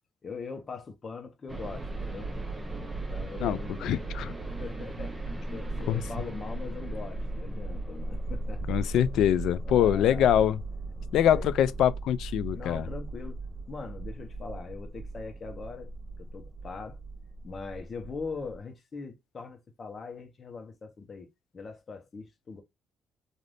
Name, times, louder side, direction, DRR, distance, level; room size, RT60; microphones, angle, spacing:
voice 1, 0.2-2.3 2.9-4.0 4.5-5.2 5.4-8.8 9.7-10.3 11.2-11.5 12.5-13.4 13.7-15.9 16.2-17.0 17.4-21.3 21.5-22.6, left 4 dB, 40° left, 0.9 m, -41 dB
sound 1, 1.5-18.6, right 2 dB, 15° right, 0.8 m, -37 dB
voice 2, 3.4-4.3 5.9-6.0 8.7-10.6 11.1-12.9, left 10 dB, 80° left, 0.3 m, -24 dB
3.4 x 2.5 x 2.5 m
cardioid pair, 90°, 0 cm